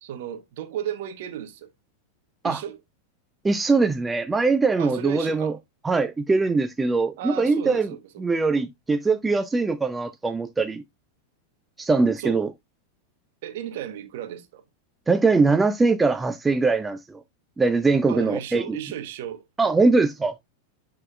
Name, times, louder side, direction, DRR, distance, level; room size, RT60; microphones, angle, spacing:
voice 1, 0.0-1.7 2.4-2.8 4.8-5.6 7.2-8.2 12.2-12.4 13.4-14.6 18.1-19.4, right 10 dB, 55° right, 1.1 m, -34 dB
voice 2, 3.4-5.5 5.8-7.9 8.2-10.8 11.8-12.5 15.1-17.2 17.6-18.8 19.6-20.3, right 3 dB, 10° right, 0.4 m, -22 dB
10.5 x 3.7 x 2.4 m
figure-of-eight pair, 90°, 0 cm